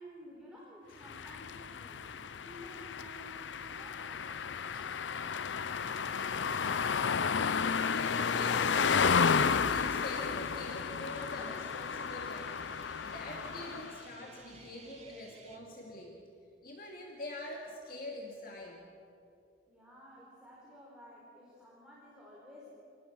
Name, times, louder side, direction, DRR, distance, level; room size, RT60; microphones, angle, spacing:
voice 1, 0.0-5.9 19.7-22.7, equal, 5° right, -6 dB, 4.4 m, -53 dB
sound 1, 1.0-14.0, left 6 dB, 85° left, 0.6 m, -32 dB
sound 2, 5.8-15.6, right 3 dB, 40° right, 2.1 m, -56 dB
voice 2, 7.9-16.2 16.6-18.8, left 1 dB, 50° left, -1 dB, 2.4 m, -45 dB
28.5 x 19.0 x 6.4 m, 2.6 s
head